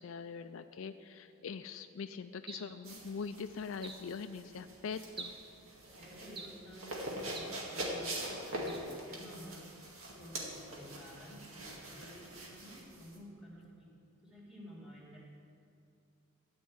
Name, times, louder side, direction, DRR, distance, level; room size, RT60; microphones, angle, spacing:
voice 1, 0.0-5.3, left 5 dB, 70° left, 9 dB, 0.4 m, -42 dB
sound 1, 2.5-2.8 3.8-4.1 5.2-5.5 6.3-6.7 7.3-7.6 8.7-8.9, right 4 dB, 25° right, 0.7 m, -47 dB
sound 2, 2.9-13.2, right 1 dB, 75° right, 2.1 m, -43 dB
voice 2, 6.0-9.6 10.1-13.9 14.2-15.2, equal, ahead, -5 dB, 2.9 m, -52 dB
13.0 x 5.4 x 8.7 m, 2.6 s
head